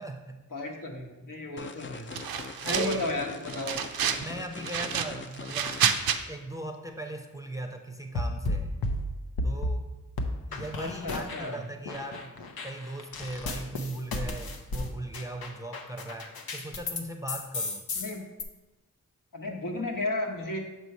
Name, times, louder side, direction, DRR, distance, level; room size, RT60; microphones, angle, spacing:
voice 1, 0.0-0.4 2.6-3.0 4.2-5.8 6.3-8.7 9.4-9.9 10.4-12.4 12.6-17.9, right 1 dB, 10° right, 3 dB, 0.6 m, -38 dB
voice 2, 0.5-2.1 2.7-3.8 10.8-11.6 17.9-18.2 19.3-20.6, left 1 dB, 65° left, 0 dB, 1.1 m, -33 dB
sound 1, 1.6-6.0, left 4 dB, 35° left, 0.4 m, -43 dB
sound 2, 2.1-3.1 3.5-4.3 4.6-6.2, right 8 dB, 85° right, 0.5 m, -29 dB
sound 3, 8.2-9.8 10.2-11.6 11.9-17.0 17.3-18.4, left 2 dB, 90° left, 0.7 m, -33 dB
6.6 x 3.1 x 5.4 m, 1.1 s
cardioid pair, 50°, 35 cm